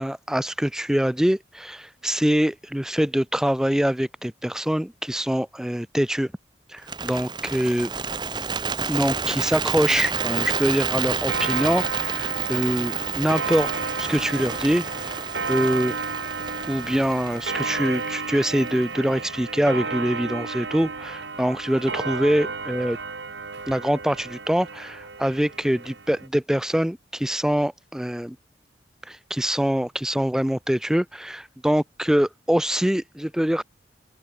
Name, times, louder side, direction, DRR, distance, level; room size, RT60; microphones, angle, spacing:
voice 1, 0.0-6.3 6.7-7.9 8.9-13.7 14.0-15.2 15.5-15.9 16.7-23.0 23.7-28.4 29.1-33.6, equal, 5° right, 0.3 m, -24 dB
Bird, 6.8-19.0, right 5 dB, 25° right, 1.8 m, -30 dB
Clock, 10.1-26.3, right 4 dB, 75° right, 2.6 m, -32 dB
open air
head